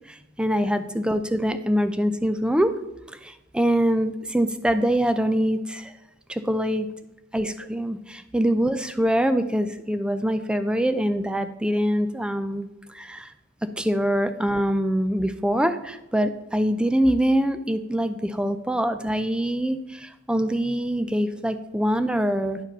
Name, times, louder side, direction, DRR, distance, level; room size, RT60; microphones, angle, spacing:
voice 1, 0.1-2.7 3.2-5.9 6.3-6.9 7.3-12.7 12.9-13.3 13.6-22.6, equal, 5° right, 10 dB, 0.4 m, -24 dB
10.0 x 4.9 x 5.3 m, 0.94 s
head